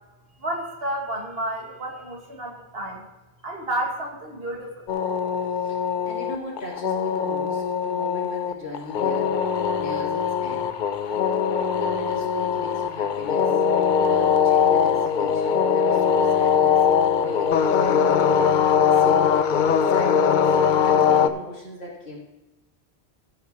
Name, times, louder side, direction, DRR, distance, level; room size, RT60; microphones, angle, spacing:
voice 1, 0.4-3.0 3.4-4.9, right 1 dB, 65° right, 0 dB, 2.1 m, -31 dB
sound 1, 4.9-21.3, left 7 dB, 55° left, 0.6 m, -21 dB
voice 2, 5.6-9.4 9.8-10.7 11.8-13.5 14.1-18.4 18.8-20.5 20.8-22.2, equal, 75° left, -5 dB, 3.4 m, -37 dB
15.0 x 8.5 x 3.0 m, 1.1 s
omnidirectional pair, 1.1 m